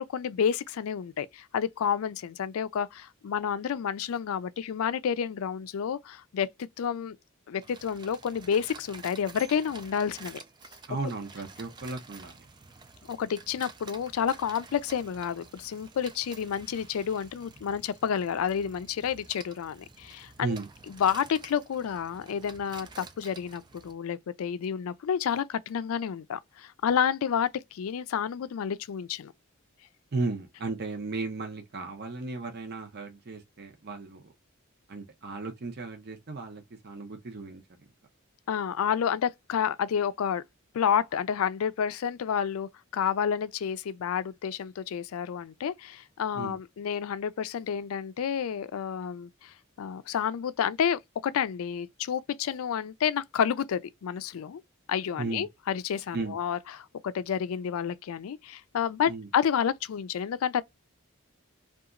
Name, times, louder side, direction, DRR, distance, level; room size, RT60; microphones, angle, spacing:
voice 1, 0.1-7.2 7.5-10.4 13.1-20.5 21.0-29.3 38.5-40.4 40.7-54.6 54.9-60.6, left 8 dB, 80° left, 0.4 m, -30 dB
sound 1, 7.6-23.9, right 4 dB, 20° right, 0.3 m, -50 dB
voice 2, 10.9-12.4 20.4-20.7 30.1-34.3 34.9-37.6 46.3-46.6 55.2-55.5 56.1-56.4 59.1-59.3, right 3 dB, 50° right, 0.7 m, -35 dB
2.8 x 2.3 x 2.4 m
head